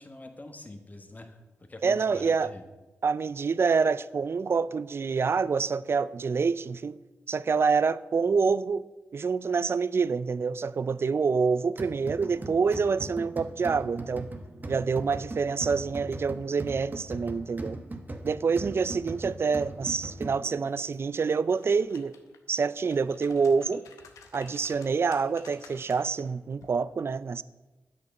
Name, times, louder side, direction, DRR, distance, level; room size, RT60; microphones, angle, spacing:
voice 1, 0.0-2.6, left 2 dB, 35° left, 1.4 m, -45 dB
voice 2, 1.8-2.5 3.0-7.0 7.3-8.8 9.1-14.3 14.7-17.8 18.2-22.1 22.5-23.8 24.3-27.4, right 5 dB, 50° right, 0.4 m, -27 dB
sound 1, 11.8-20.7, right 2 dB, 35° right, 1.1 m, -40 dB
sound 2, 21.4-22.4 22.8-26.2 26.6-26.8, left 6 dB, 85° left, 0.8 m, -52 dB
8.4 x 6.6 x 5.4 m
supercardioid pair, 40°, 5 cm